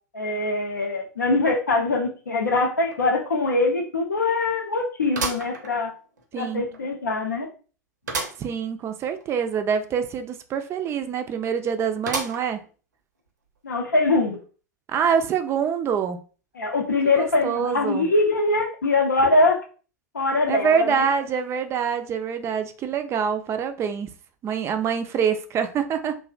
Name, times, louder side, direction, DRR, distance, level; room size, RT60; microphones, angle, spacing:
voice 1, 0.1-5.9 6.3-7.5 13.6-14.4 16.6-19.6 20.1-21.1, left 2 dB, 85° left, 0.6 m, -23 dB
sound 1, 2.9-3.0 3.4-3.5 5.1-6.2 6.7-6.8 8.1-8.5 8.9-9.0 9.2-9.3 12.1-12.7 13.3-13.4 14.3-14.4, right 4 dB, 80° right, 0.6 m, -31 dB
voice 2, 6.3-6.6 8.4-12.6 14.9-16.2 17.2-18.1 20.5-24.1 24.4-26.2, right 7 dB, 30° right, 0.3 m, -25 dB
2.5 x 2.1 x 2.4 m
figure-of-eight pair, 90°, 9 cm